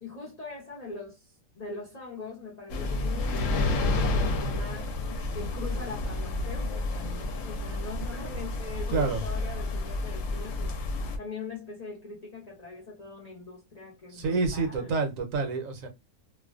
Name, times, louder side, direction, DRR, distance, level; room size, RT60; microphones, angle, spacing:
voice 1, 0.0-4.9 5.3-10.8 11.2-15.0, left 3 dB, 40° left, 0.6 m, -42 dB
sound 1, 2.7-11.2, left 2 dB, 70° left, 0.9 m, -30 dB
voice 2, 8.9-9.2 14.1-15.9, right 4 dB, 70° right, 1.0 m, -28 dB
2.4 x 2.2 x 2.3 m
omnidirectional pair, 1.5 m